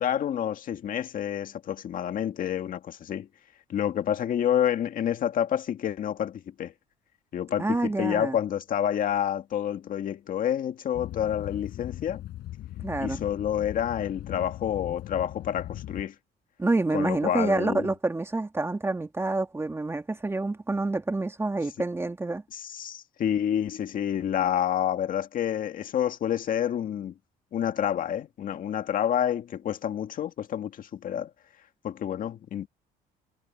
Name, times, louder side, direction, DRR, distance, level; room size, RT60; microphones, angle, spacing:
voice 1, 0.0-3.3 3.7-6.7 7.3-12.2 13.0-16.1 16.9-17.9 22.5-27.1 27.5-31.3 31.8-32.7, left 10 dB, 55° left, 2.0 m, -28 dB
voice 2, 7.6-8.4 12.8-13.2 16.6-22.4, right 2 dB, 15° right, 2.2 m, -28 dB
sound 1, 10.9-16.0, left 14 dB, 70° left, 6.2 m, -39 dB
cardioid pair, 110°, 17 cm